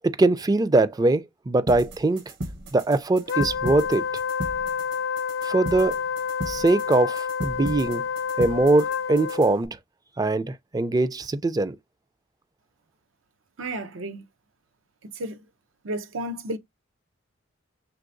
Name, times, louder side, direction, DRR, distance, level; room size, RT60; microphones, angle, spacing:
voice 1, 0.0-2.2 2.7-4.0 5.4-6.0 6.4-8.0 8.4-9.8 10.2-11.8, right 2 dB, 20° right, 0.3 m, -22 dB
sound 1, 1.7-9.7, right 1 dB, 60° right, 0.9 m, -36 dB
Wind instrument woodwind instrument, 3.3-9.6, left 6 dB, 65° left, 0.3 m, -29 dB
voice 2, 13.6-14.2 15.0-15.4 15.8-16.6, right 1 dB, 90° right, 0.7 m, -32 dB
4.5 x 3.4 x 2.5 m
head